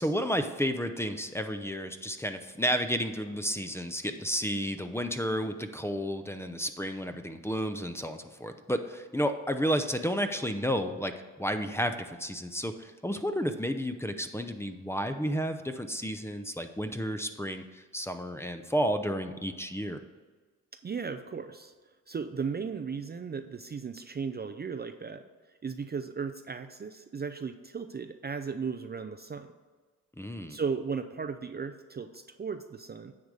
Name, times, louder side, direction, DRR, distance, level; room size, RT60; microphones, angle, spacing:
voice 1, 0.0-20.0 30.2-30.6, equal, 10° left, 8 dB, 0.7 m, -32 dB
voice 2, 20.8-21.7 22.1-25.3 25.6-29.5 30.5-33.1, right 5 dB, 30° right, 8 dB, 0.5 m, -36 dB
9.5 x 3.5 x 6.7 m, 1.4 s
cardioid pair, 60°, 32 cm